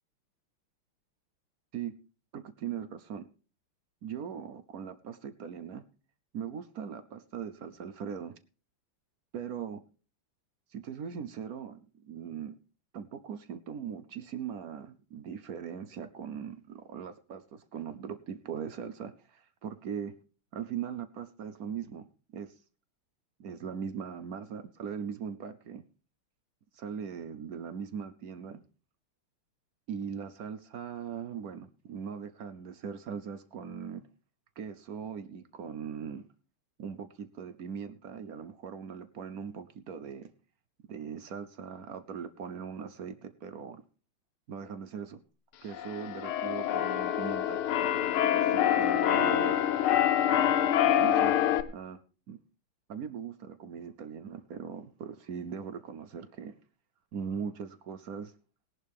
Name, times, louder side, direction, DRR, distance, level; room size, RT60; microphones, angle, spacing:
voice 1, 2.3-3.2 4.0-5.8 6.3-8.3 9.3-9.8 10.7-12.5 12.9-20.1 20.5-22.0 22.3-22.5 23.4-25.8 26.7-28.6 29.9-34.0 34.6-36.2 36.8-40.3 40.9-43.8 44.5-45.2 45.6-47.6 48.3-49.5 51.0-51.3 51.7-52.0 52.3-52.4 52.9-56.6 57.1-58.3, right 7 dB, 65° right, 0.9 m, -40 dB
Keyboard (musical), 45.7-51.6, left 10 dB, 80° left, 1.7 m, -26 dB
17.5 x 11.0 x 3.5 m
omnidirectional pair, 2.3 m